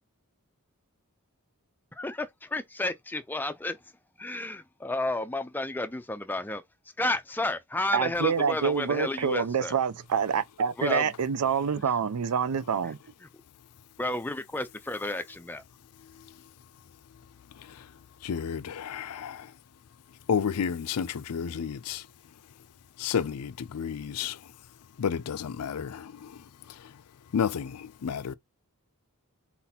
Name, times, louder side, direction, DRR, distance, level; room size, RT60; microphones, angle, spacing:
voice 1, 2.0-3.8 4.2-6.6 7.0-9.7 10.8-11.0 14.0-15.6, left 2 dB, 10° left, 0.4 m, -31 dB
voice 2, 7.9-13.0, right 6 dB, 85° right, 0.5 m, -27 dB
voice 3, 18.2-19.5 20.3-22.0 23.0-24.4 25.0-26.3 27.3-28.3, left 7 dB, 90° left, 0.4 m, -31 dB
4.3 x 2.9 x 4.0 m
head